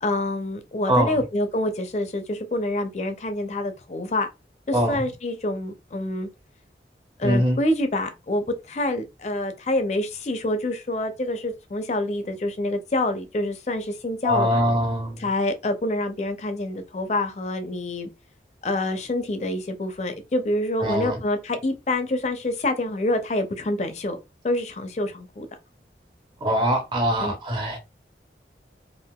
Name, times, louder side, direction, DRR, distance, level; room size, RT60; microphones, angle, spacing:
voice 1, 0.0-4.3 4.7-6.3 7.2-14.5 15.2-18.1 18.6-24.2 24.4-25.5 27.2-27.3, left 1 dB, 40° left, 0.4 m, -26 dB
voice 2, 0.9-1.2 4.7-5.1 7.2-7.6 14.2-15.2 20.8-21.2 26.4-27.8, equal, 25° right, 0.7 m, -23 dB
3.4 x 2.5 x 2.2 m
head